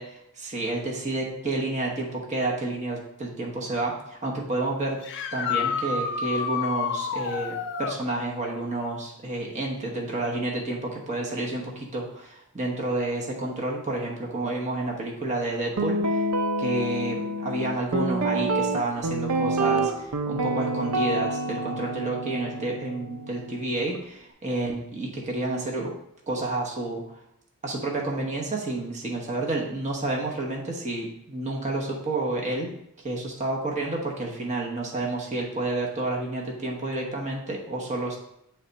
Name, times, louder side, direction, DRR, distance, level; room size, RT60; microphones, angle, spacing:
voice 1, 0.0-5.0 5.3-16.3 16.6-25.9 26.3-27.0 27.6-32.7 33.0-38.2, right 2 dB, 35° right, -1 dB, 1.1 m, -30 dB
sound 1, 5.0-8.0 11.3-11.4 13.5-13.6 19.8-19.9, left 6 dB, 55° left, 0.5 m, -29 dB
Guitar, 15.8-24.0, right 2 dB, 80° right, 0.6 m, -28 dB
8.0 x 3.4 x 4.0 m, 0.78 s
head